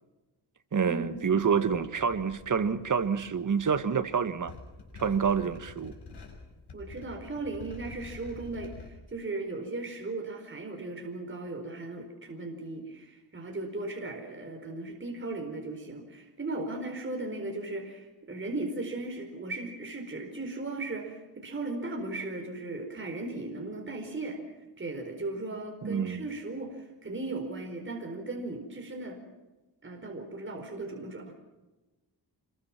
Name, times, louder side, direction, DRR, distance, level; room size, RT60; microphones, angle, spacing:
voice 1, 0.7-4.5 4.9-5.9 25.8-26.2, right 6 dB, 45° right, 9 dB, 1.7 m, -27 dB
sound 1, 1.0-8.9, left 4 dB, 65° left, 6.1 m, -48 dB
voice 2, 6.7-24.4 24.8-29.2 29.8-31.3, right 2 dB, 30° right, 3 dB, 4.5 m, -37 dB
26.5 x 22.5 x 6.1 m, 1.1 s
wide cardioid pair, 125°, 42 cm